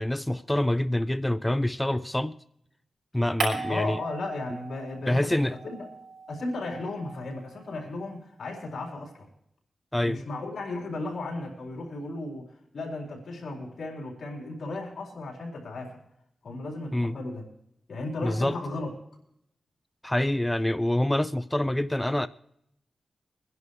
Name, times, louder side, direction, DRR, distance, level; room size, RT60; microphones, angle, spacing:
voice 1, 0.0-2.3 3.1-4.0 5.1-5.6 9.9-10.2 16.9-17.2 18.2-18.6 20.0-22.3, left 1 dB, 10° left, 0.4 m, -26 dB
sound 1, 3.4-5.1 5.4-7.8, right 4 dB, 90° right, 4.5 m, -37 dB
voice 2, 3.7-5.4 5.6-5.9 6.3-9.3 10.0-16.0 16.4-17.4 17.9-18.9, left 2 dB, 80° left, 4.2 m, -35 dB
23.5 x 11.0 x 3.2 m
cardioid pair, 75°, 0 cm